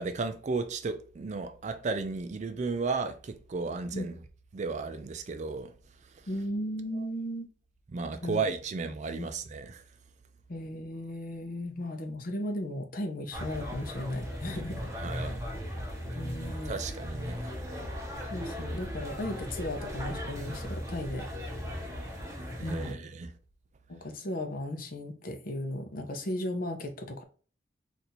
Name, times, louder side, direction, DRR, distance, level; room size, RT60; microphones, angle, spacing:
voice 1, 0.0-4.1 4.5-5.7 7.0-7.1 7.9-9.8 15.0-15.4 16.7-17.5 22.6-23.3, right 4 dB, 40° right, 0.4 m, -34 dB
voice 2, 6.3-7.5 8.2-8.4 9.1-9.3 10.5-15.3 16.1-16.7 17.7-17.8 18.3-21.3 22.6-23.0 23.9-27.2, left 1 dB, 55° left, 0.7 m, -36 dB
sound 1, 13.3-22.9, equal, 20° right, 0.9 m, -37 dB
2.7 x 2.5 x 4.2 m
head